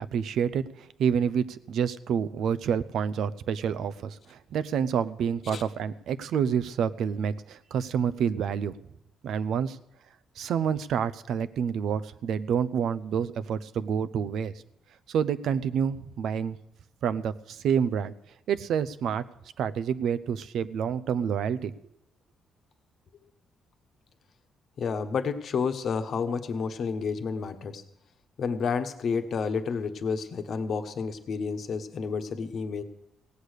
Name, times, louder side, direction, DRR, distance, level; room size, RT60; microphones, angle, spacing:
voice 1, 0.0-8.8 9.2-9.8 10.4-14.5 15.1-16.6 17.0-18.1 18.5-19.2 19.6-21.7, right 7 dB, 75° right, 14 dB, 0.6 m, -28 dB
voice 2, 24.8-27.8 28.4-32.8, left 5 dB, 60° left, 8 dB, 1.2 m, -30 dB
17.0 x 8.1 x 6.6 m, 0.79 s
cardioid pair, 90°, 0 cm